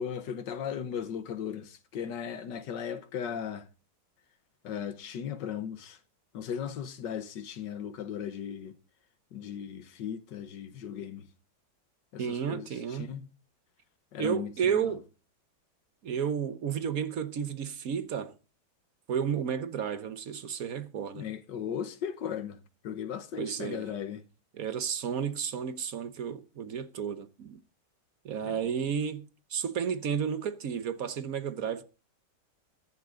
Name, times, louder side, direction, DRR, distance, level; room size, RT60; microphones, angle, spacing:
voice 1, 0.0-3.7 4.6-6.0 6.3-8.8 9.3-11.3 12.1-13.3 14.1-14.9 21.1-22.6 22.8-24.2 28.4-28.6, left 8 dB, 90° left, 1.7 m, -37 dB
voice 2, 12.2-13.1 14.2-15.0 16.0-18.3 19.1-21.3 23.4-23.9 24.5-27.6 28.2-31.8, right 7 dB, 60° right, 1.2 m, -32 dB
14.5 x 11.0 x 3.7 m
omnidirectional pair, 1.9 m